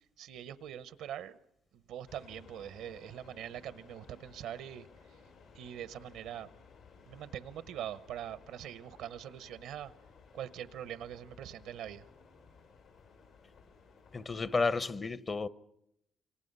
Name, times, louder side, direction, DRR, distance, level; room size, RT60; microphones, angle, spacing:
voice 1, 0.2-1.4 1.7-4.9 5.5-6.5 7.1-9.9 10.3-12.1, right 10 dB, 90° right, 0.9 m, -43 dB
sound 1, 2.1-14.6, left 5 dB, 85° left, 5.8 m, -58 dB
voice 2, 14.1-15.5, left 4 dB, 35° left, 0.9 m, -32 dB
27.5 x 24.5 x 5.5 m
cardioid pair, 90°, 0 cm